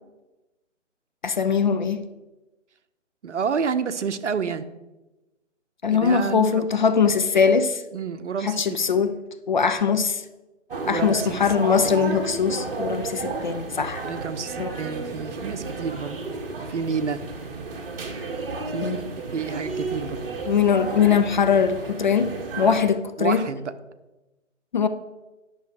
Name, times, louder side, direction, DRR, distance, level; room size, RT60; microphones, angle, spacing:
voice 1, 1.2-2.0 5.8-7.8 8.4-9.1 9.5-10.2 10.9-14.0 14.6-14.7 18.8-19.1 20.5-23.4 24.7-24.9, left 6 dB, 40° left, 0.5 m, -21 dB
voice 2, 3.2-4.7 5.9-6.7 7.9-8.7 10.8-11.4 11.7-12.1 14.0-16.2 16.6-17.4 18.7-19.0 19.3-20.2 23.2-23.7, right 6 dB, 65° right, 0.9 m, -29 dB
sound 1, 10.7-22.8, right 3 dB, 45° right, 1.5 m, -32 dB
10.5 x 6.3 x 4.8 m
figure-of-eight pair, 150°, 38 cm